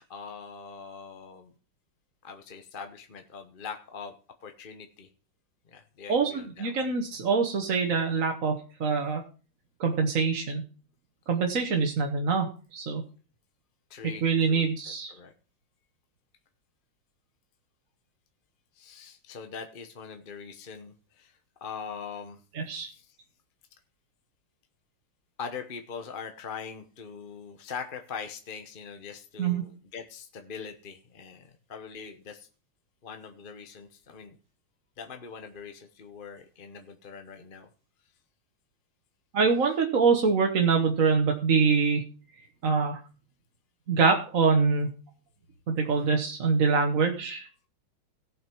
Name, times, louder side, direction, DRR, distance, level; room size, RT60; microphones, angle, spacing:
voice 1, 0.0-1.5 2.2-4.1 4.4-5.1 5.7-6.9 13.9-14.7 15.1-15.3 18.8-21.3 21.6-22.4 22.8-23.1 25.4-32.5 33.0-34.4 35.0-37.7 41.0-41.1 45.8-46.1, left 6 dB, 40° left, 6 dB, 0.8 m, -42 dB
voice 2, 6.1-9.2 9.8-10.6 11.3-13.0 14.2-15.1 22.5-22.9 29.4-29.6 39.3-42.0 42.6-43.0 43.9-44.9 45.7-47.5, right 5 dB, 45° right, 2 dB, 1.3 m, -25 dB
17.5 x 5.9 x 4.5 m, 0.37 s
omnidirectional pair, 2.3 m